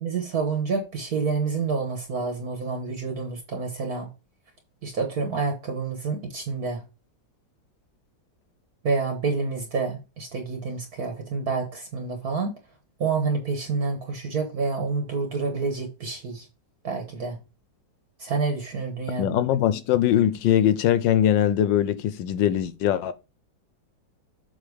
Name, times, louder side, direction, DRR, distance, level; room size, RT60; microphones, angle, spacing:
voice 1, 0.0-4.1 4.8-6.8 8.8-12.5 13.0-16.5 16.8-17.4 18.2-19.3, right 4 dB, 55° right, 1.7 m, -28 dB
voice 2, 19.2-23.1, left 11 dB, 90° left, 1.4 m, -21 dB
7.6 x 3.5 x 5.2 m
omnidirectional pair, 2.0 m